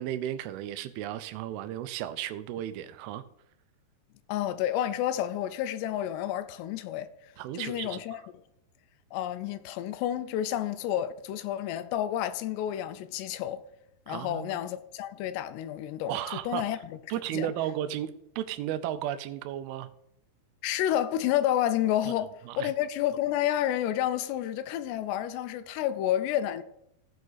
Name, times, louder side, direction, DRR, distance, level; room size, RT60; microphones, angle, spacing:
voice 1, 0.0-3.2 7.4-8.0 14.1-14.6 16.1-16.6 17.1-19.9 22.1-22.2 22.5-22.7, right 11 dB, 80° right, 2.3 m, -34 dB
voice 2, 4.3-7.1 7.5-8.2 9.1-13.6 14.1-16.2 16.5-16.9 17.3-17.5 20.6-22.3 22.6-26.6, left 11 dB, 85° left, 2.7 m, -30 dB
15.5 x 5.2 x 4.0 m
omnidirectional pair, 4.8 m